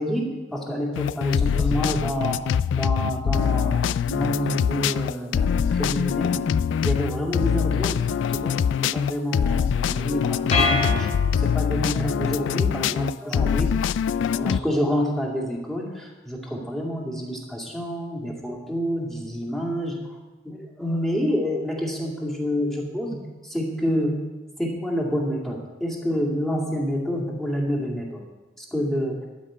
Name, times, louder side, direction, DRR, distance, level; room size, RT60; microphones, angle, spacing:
voice 1, 0.0-2.4 2.7-6.4 6.8-11.1 11.3-13.7 14.3-20.2 20.4-23.2 23.4-24.2 24.6-28.2 28.6-29.2, equal, ahead, -2 dB, 2.3 m, -28 dB
sound 1, 1.0-14.6, left 7 dB, 85° left, 0.3 m, -24 dB
sound 2, 10.5-11.9, left 2 dB, 40° left, 3.9 m, -25 dB
12.5 x 5.9 x 9.3 m, 1.2 s
head